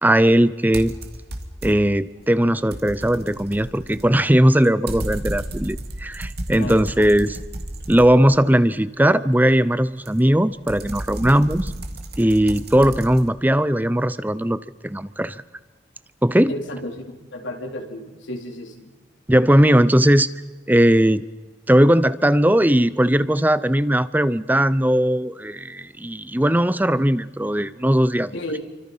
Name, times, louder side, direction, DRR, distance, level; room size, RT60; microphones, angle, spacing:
voice 1, 0.0-0.9 1.6-7.4 7.9-11.7 12.2-15.4 16.2-16.5 19.3-20.3 20.7-21.2 21.7-28.3, right 1 dB, 10° right, 16 dB, 0.7 m, -18 dB
sound 1, 0.7-2.0 2.4-8.6 10.1-13.3, right 1 dB, 55° right, 2.5 m, -33 dB
voice 2, 16.5-18.9 28.3-28.6, left 1 dB, 75° left, 2 dB, 3.8 m, -32 dB
29.5 x 25.0 x 5.7 m, 1.2 s
head